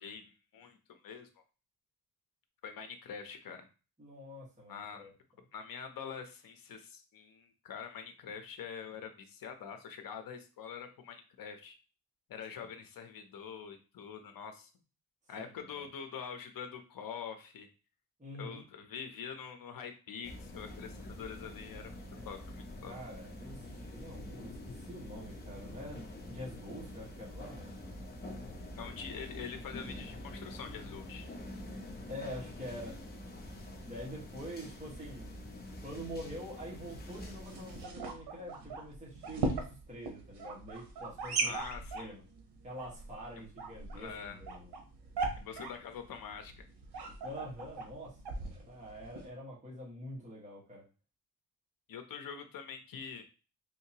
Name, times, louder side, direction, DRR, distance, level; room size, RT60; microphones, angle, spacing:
voice 1, 0.0-1.4 2.6-3.7 4.7-5.1 5.5-11.7 12.3-14.7 15.3-17.7 18.4-21.9 22.2-22.9 28.8-31.3 41.4-42.2 43.4-43.5 44.0-44.4 45.4-46.6 51.9-53.2, left 7 dB, 60° left, 7 dB, 0.7 m, -45 dB
voice 2, 4.0-5.1 12.6-12.7 15.4-15.9 18.2-18.6 22.8-27.7 32.1-33.0 33.8-35.3 35.8-41.5 41.9-42.2 42.6-44.7 47.2-48.2 48.5-50.8, equal, 20° right, -5 dB, 1.3 m, -46 dB
sound 1, 20.2-37.8, left 1 dB, 25° left, 0.8 m, -46 dB
sound 2, 36.9-49.3, right 3 dB, 80° right, 1.0 m, -40 dB
3.6 x 2.8 x 2.8 m, 0.34 s
wide cardioid pair, 140°, 39 cm